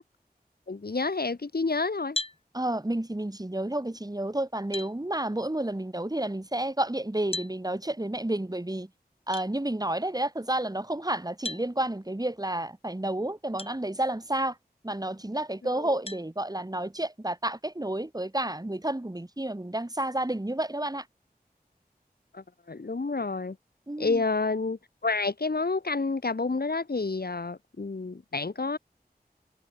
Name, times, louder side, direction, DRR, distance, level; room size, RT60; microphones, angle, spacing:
voice 1, 0.7-2.2 15.7-15.9 22.3-23.6 24.0-28.8, left 3 dB, 70° left, 1.9 m, -29 dB
sound 1, 2.1-2.4 4.1-4.2 4.7-4.9 7.3-7.5 9.3-9.5 11.4-11.7 13.6-13.7 14.4-14.5 16.1-16.3, left 2 dB, 35° left, 2.0 m, -34 dB
voice 2, 2.5-8.9 9.3-14.6 14.8-21.1 23.9-24.2, right 1 dB, 25° right, 2.5 m, -30 dB
wide cardioid pair, 45°, 16 cm